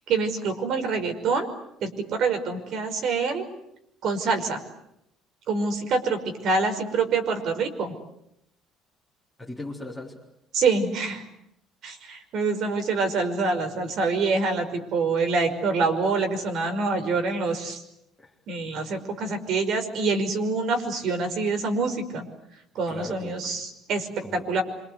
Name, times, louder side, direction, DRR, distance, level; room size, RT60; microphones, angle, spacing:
voice 1, 0.1-1.5 1.8-3.5 4.0-4.6 5.5-7.9 10.5-11.2 11.8-17.8 18.5-22.3 22.7-24.6, right 4 dB, 55° right, 7 dB, 5.7 m, -26 dB
voice 2, 9.4-10.2 18.2-18.3 22.9-23.6 24.2-24.6, left 2 dB, ahead, -5 dB, 4.0 m, -38 dB
27.5 x 26.0 x 8.3 m, 0.80 s
cardioid pair, 145°, 0 cm